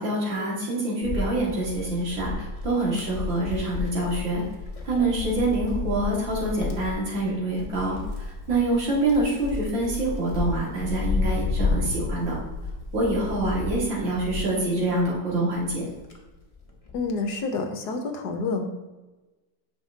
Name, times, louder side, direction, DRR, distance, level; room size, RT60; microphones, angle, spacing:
voice 1, 0.0-4.4 4.8-12.4 12.9-15.9, right 2 dB, 75° right, -4 dB, 2.6 m, -26 dB
Wind, 1.0-15.1 15.6-17.1, left 3 dB, 25° left, 0.8 m, -32 dB
voice 2, 16.9-18.7, left 3 dB, 65° left, 5 dB, 1.2 m, -28 dB
9.4 x 5.7 x 2.7 m, 1.2 s
omnidirectional pair, 2.0 m